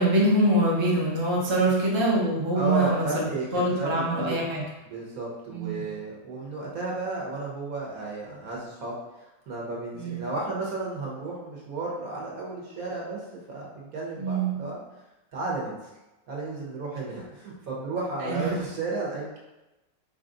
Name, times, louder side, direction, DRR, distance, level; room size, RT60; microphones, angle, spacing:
voice 1, 0.0-3.3 3.5-4.6 5.5-5.8 9.9-10.2 14.2-14.5 18.2-18.5, right 1 dB, 25° right, -5 dB, 0.6 m, -24 dB
voice 2, 2.5-4.4 4.8-13.2 13.5-14.8 15.3-15.8 16.3-19.4, right 2 dB, 60° right, -4 dB, 1.3 m, -33 dB
5.2 x 2.4 x 3.8 m, 1.0 s
omnidirectional pair, 1.9 m